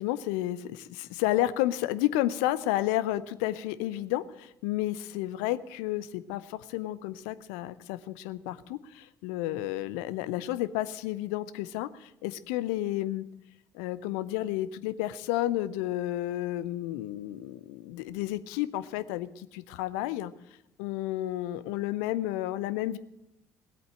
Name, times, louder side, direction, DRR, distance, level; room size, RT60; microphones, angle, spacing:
voice 1, 0.0-13.2 13.7-20.3 20.8-23.0, left 14 dB, 65° left, 16 dB, 0.6 m, -31 dB
17.5 x 8.1 x 8.8 m, 0.83 s
figure-of-eight pair, 50°, 8 cm